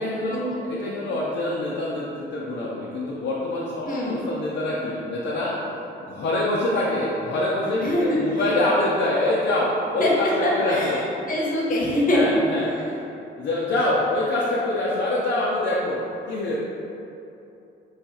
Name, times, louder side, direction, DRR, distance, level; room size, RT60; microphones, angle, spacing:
voice 1, 0.0-5.6 6.0-11.0 12.1-13.0 13.4-16.6, left 1 dB, 60° left, -6 dB, 0.5 m, -25 dB
voice 2, 3.8-4.2 7.7-8.4 10.0-10.1 10.4-11.0 11.3-12.3, left 1 dB, 45° left, -5 dB, 0.9 m, -23 dB
3.2 x 2.4 x 4.1 m, 2.9 s
cardioid pair, 90°, 20 cm